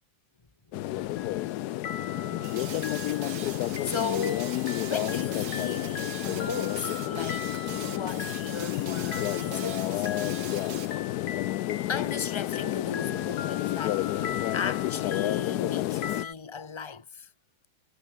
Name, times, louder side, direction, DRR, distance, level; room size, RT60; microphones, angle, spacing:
sound 1, 0.7-16.2, left 15 dB, 80° left, 0.8 m, -30 dB
voice 1, 0.7-1.5 2.1-2.9 3.3-4.6 4.8-10.1 11.9-17.3, left 5 dB, 20° left, 0.9 m, -37 dB
sound 2, 1.1-1.6 1.8-16.3, left 7 dB, 60° left, 2.4 m, -41 dB
sound 3, 2.4-10.9, right 8 dB, 50° right, 1.8 m, -42 dB
omnidirectional pair, 2.2 m